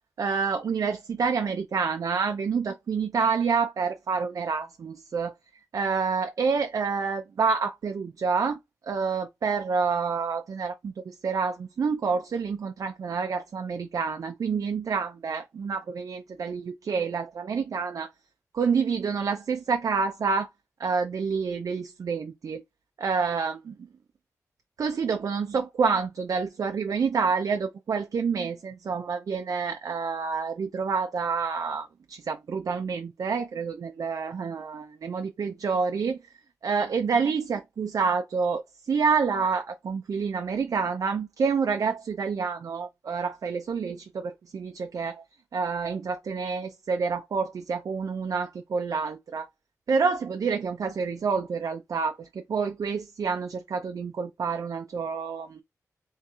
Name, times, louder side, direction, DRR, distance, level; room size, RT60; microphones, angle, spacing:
voice 1, 0.2-5.3 5.7-8.6 8.9-18.1 18.5-20.5 20.8-22.6 23.0-23.9 24.8-36.2 36.6-45.2 45.5-49.5 49.9-55.6, right 5 dB, 70° right, 0.4 m, -28 dB
3.1 x 2.9 x 3.5 m
wide cardioid pair, 80°, 6 cm